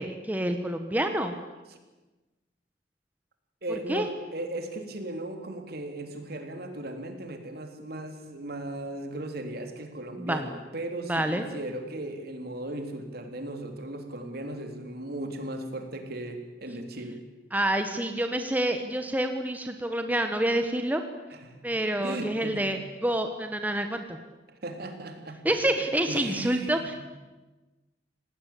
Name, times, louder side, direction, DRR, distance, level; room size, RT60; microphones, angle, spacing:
voice 1, 0.0-1.3 3.9-4.1 10.2-10.4 11.1-11.4 17.5-21.0 21.6-24.2 25.4-26.9, right 1 dB, 10° right, 6 dB, 1.4 m, -28 dB
voice 2, 3.6-17.2 21.3-21.6 22.0-22.7 24.6-25.6 26.0-27.0, right 1 dB, 60° right, 5 dB, 3.5 m, -37 dB
27.5 x 19.0 x 8.6 m, 1.2 s
head